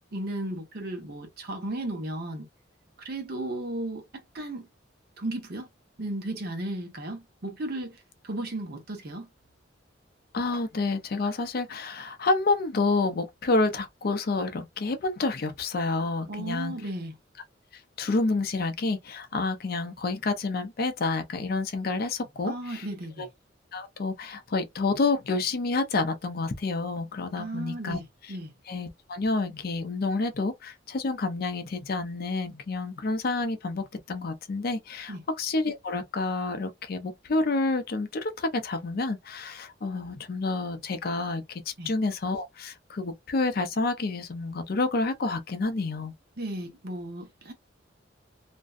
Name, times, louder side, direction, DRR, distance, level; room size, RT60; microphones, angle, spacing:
voice 1, 0.1-2.5 3.0-4.7 5.2-5.7 6.0-7.9 8.2-9.3 16.3-17.1 22.5-23.3 27.4-28.0 28.3-28.5 35.1-35.2 41.8-41.9 46.4-47.5, right 1 dB, 55° right, 0.8 m, -35 dB
voice 2, 10.3-16.7 18.0-22.9 23.2-23.3 23.7-28.0 28.7-46.1, left 3 dB, 50° left, 0.5 m, -29 dB
2.5 x 2.1 x 2.3 m
head